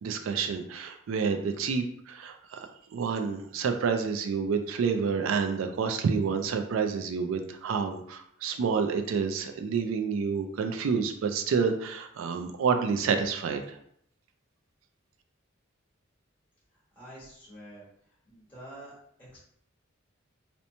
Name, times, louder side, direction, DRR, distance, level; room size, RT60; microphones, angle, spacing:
voice 1, 0.0-2.7 2.9-13.8, right 5 dB, 90° right, 6 dB, 0.3 m, -29 dB
voice 2, 16.9-17.8 18.3-19.4, right 1 dB, 10° left, -9 dB, 1.1 m, -47 dB
2.8 x 2.1 x 2.6 m, 0.67 s
head